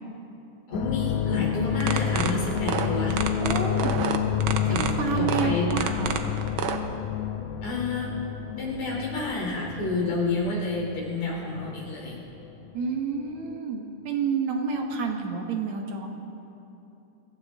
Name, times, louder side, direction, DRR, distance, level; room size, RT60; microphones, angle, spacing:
sound 1, 0.7-12.9 13.1-13.6, left 10 dB, 80° left, 2.0 m, -30 dB
voice 1, 0.7-3.2 4.7-4.8 5.1-5.7 7.6-8.1 8.6-12.2, left 2 dB, 65° left, -3 dB, 4.6 m, -29 dB
sound 2, 1.7-6.8, right 7 dB, 85° right, 1.1 m, -28 dB
voice 2, 3.4-3.9 4.7-6.2 12.7-16.1, right 5 dB, 65° right, 2 dB, 2.4 m, -29 dB
24.5 x 15.5 x 3.6 m, 2.9 s
omnidirectional pair, 3.5 m